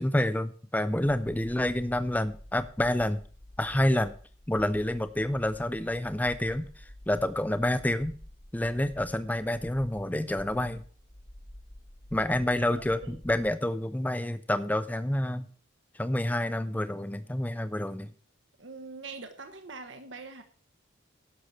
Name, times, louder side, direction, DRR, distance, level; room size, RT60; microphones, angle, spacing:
voice 1, 0.0-3.2 3.6-4.1 4.5-8.2 8.5-10.8 12.1-15.5 15.9-18.1, left 1 dB, 10° left, 12 dB, 0.5 m, -28 dB
sound 1, 3.1-13.5, left 1 dB, 65° left, 2.5 m, -49 dB
voice 2, 12.7-13.1 18.6-20.4, right 3 dB, 65° right, 7 dB, 1.2 m, -43 dB
11.5 x 6.8 x 7.4 m, 0.42 s
head